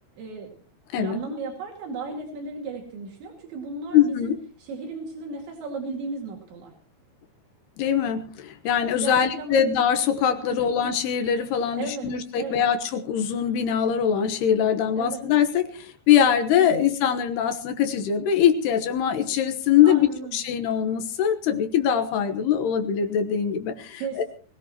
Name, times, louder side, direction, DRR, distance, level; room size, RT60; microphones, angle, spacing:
voice 1, 0.2-0.5 1.0-6.7 9.0-9.7 10.5-10.7 11.8-12.7 15.0-15.2 16.6-16.8 19.8-20.4 24.0-24.2, right 4 dB, 75° right, 1 dB, 4.6 m, -35 dB
voice 2, 3.9-4.4 7.8-24.2, left 8 dB, 70° left, 8 dB, 3.0 m, -22 dB
22.0 x 17.5 x 3.0 m, 0.40 s
omnidirectional pair, 5.3 m